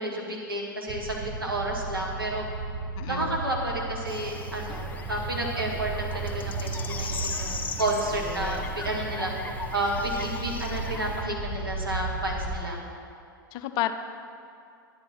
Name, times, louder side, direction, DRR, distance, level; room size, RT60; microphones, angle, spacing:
voice 1, 0.0-2.4 3.1-9.3 9.7-12.8, right 1 dB, 85° right, -3 dB, 2.0 m, -31 dB
sound 1, 0.9-12.6, right 3 dB, 15° right, 1.3 m, -35 dB
voice 2, 3.0-3.4 8.2-8.6 13.5-13.9, left 13 dB, 35° left, 9 dB, 0.6 m, -32 dB
sound 2, 4.1-11.2, left 4 dB, 15° left, 0.9 m, -39 dB
11.0 x 9.4 x 4.5 m, 2.4 s
figure-of-eight pair, 95°, 12 cm